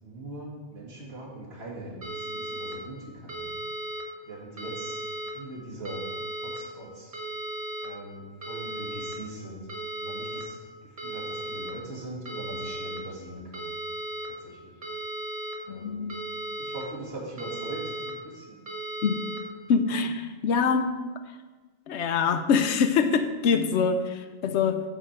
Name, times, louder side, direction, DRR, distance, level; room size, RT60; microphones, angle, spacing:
voice 1, 0.0-3.5 4.2-6.0 6.4-7.2 7.8-9.7 10.0-13.7 14.2-14.8 15.6-16.1 16.6-18.6, right 2 dB, 65° right, -6 dB, 2.6 m, -41 dB
sound 1, 2.0-2.7 3.3-4.0 4.6-5.3 5.9-6.6 7.1-7.9 8.4-9.1 9.7-10.4 11.0-11.7 12.3-13.0 13.5-14.3 14.8-15.6 16.1-16.8 17.4-18.1 18.7-19.4, right 1 dB, 35° right, 1.4 m, -35 dB
voice 2, 15.7-16.2 19.0-19.2 19.7-21.0 21.9-24.8, left 5 dB, 80° left, 10 dB, 0.9 m, -24 dB
9.0 x 6.3 x 4.4 m, 1.3 s
omnidirectional pair, 1.2 m